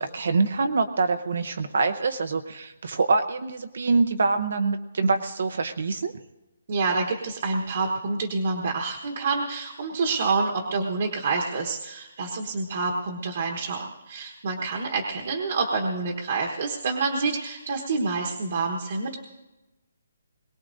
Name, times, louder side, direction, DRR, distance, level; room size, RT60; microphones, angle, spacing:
voice 1, 0.0-6.1, right 3 dB, 55° right, 8 dB, 0.7 m, -25 dB
voice 2, 6.7-19.2, right 4 dB, 40° right, 0 dB, 1.2 m, -27 dB
22.0 x 18.0 x 2.6 m, 1.0 s
hypercardioid pair, 180°, 0 cm